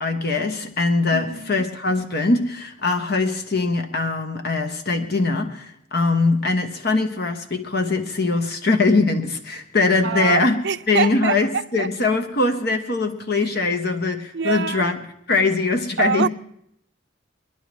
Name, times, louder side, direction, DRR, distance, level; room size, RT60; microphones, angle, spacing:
voice 1, 0.0-15.0 15.3-16.3, left 3 dB, 55° left, 1.2 m, -22 dB
voice 2, 1.1-1.6 10.0-11.9 14.3-14.9 16.0-16.3, right 6 dB, 65° right, 0.6 m, -25 dB
23.5 x 11.0 x 3.1 m
head